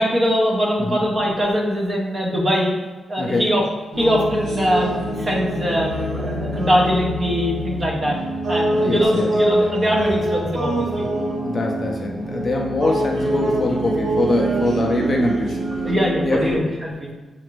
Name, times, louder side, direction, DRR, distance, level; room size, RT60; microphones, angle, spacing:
voice 1, 0.0-2.8 3.1-3.6 4.0-8.2 8.5-11.0 15.8-17.1, equal, 25° right, -2 dB, 0.7 m, -21 dB
sound 1, 3.9-16.5, right 1 dB, 55° right, 0.9 m, -24 dB
voice 2, 8.7-9.3 11.4-15.6 16.2-16.7, left 2 dB, 30° left, 1 dB, 0.4 m, -23 dB
5.7 x 2.5 x 3.0 m, 1.3 s
wide cardioid pair, 175°, 0 cm